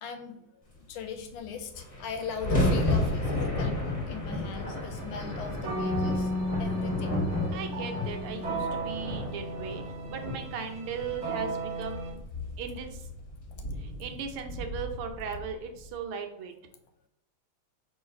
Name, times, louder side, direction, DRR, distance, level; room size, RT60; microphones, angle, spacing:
voice 1, 0.0-6.3 6.6-7.2, left 6 dB, 80° left, 6 dB, 1.4 m, -39 dB
sound 1, 1.3-1.4 1.5-15.9, left 1 dB, 25° left, 0.8 m, -33 dB
sound 2, 4.4-12.1, right 1 dB, 45° right, 1.0 m, -34 dB
voice 2, 7.5-9.8 10.1-12.2 12.6-13.1 13.8-16.5, right 6 dB, 85° right, 5 dB, 1.5 m, -37 dB
3.1 x 3.1 x 4.7 m, 0.81 s
omnidirectional pair, 2.4 m